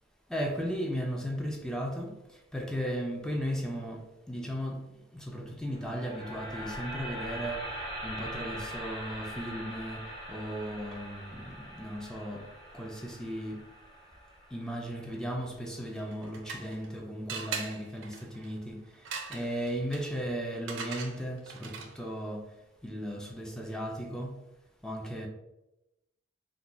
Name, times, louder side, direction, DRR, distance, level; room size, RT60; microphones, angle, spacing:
voice 1, 0.3-12.5 12.7-13.6 14.5-22.5 22.8-24.4 24.8-25.3, equal, 5° left, 0.3 m, -36 dB
sound 1, 5.7-15.9, equal, 30° left, 0.8 m, -42 dB
sound 2, 16.0-16.9 17.3-22.1, right 5 dB, 70° right, 0.4 m, -41 dB
2.3 x 2.1 x 3.8 m
head